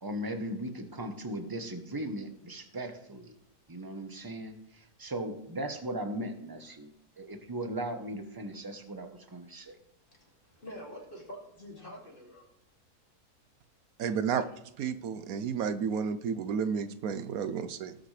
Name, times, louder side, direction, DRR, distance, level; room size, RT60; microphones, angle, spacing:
voice 1, 0.0-3.3 3.7-9.8, right 1 dB, 15° right, 6 dB, 0.8 m, -38 dB
voice 2, 10.1-12.5, equal, 35° left, -2 dB, 2.7 m, -46 dB
voice 3, 14.0-14.5 14.8-18.0, right 6 dB, 70° right, 12 dB, 1.1 m, -31 dB
19.0 x 6.5 x 3.3 m, 0.81 s
omnidirectional pair, 1.6 m